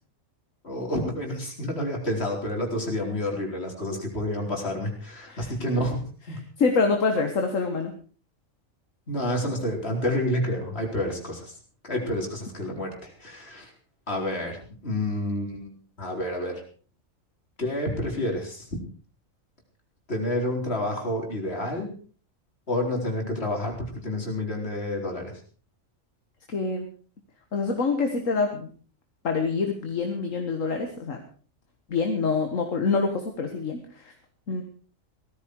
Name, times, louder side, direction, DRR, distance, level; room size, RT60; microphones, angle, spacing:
voice 1, 0.6-6.0 6.3-6.4 9.1-11.6 11.8-13.7 14.1-14.6 14.8-16.6 17.6-18.7 20.1-21.9 22.7-25.3, left 1 dB, 50° left, 1 dB, 4.6 m, -29 dB
voice 2, 6.6-7.9 26.5-26.9 27.5-28.7 29.2-31.2 31.9-34.1 34.5-34.6, left 4 dB, 70° left, 4 dB, 2.0 m, -26 dB
18.0 x 14.0 x 4.7 m, 0.40 s
omnidirectional pair, 1.4 m